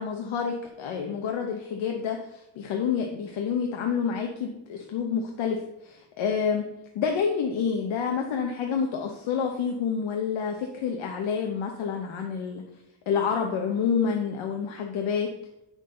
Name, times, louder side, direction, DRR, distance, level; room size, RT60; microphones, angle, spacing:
voice 1, 0.0-6.6 6.9-12.6 13.1-15.3, left 6 dB, 75° left, 2 dB, 1.0 m, -28 dB
8.3 x 6.4 x 3.8 m, 0.89 s
cardioid pair, 155°, 47 cm